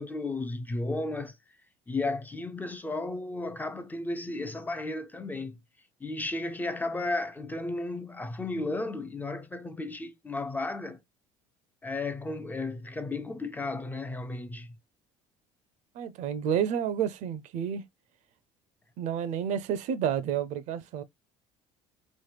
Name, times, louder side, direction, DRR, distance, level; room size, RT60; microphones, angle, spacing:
voice 1, 0.0-1.4 1.9-5.6 6.0-11.0 11.8-14.8, left 2 dB, 15° left, 0.4 m, -34 dB
voice 2, 15.9-17.8 19.0-21.0, right 8 dB, 60° right, 0.5 m, -30 dB
3.0 x 2.1 x 3.2 m
supercardioid pair, 95°, 13 cm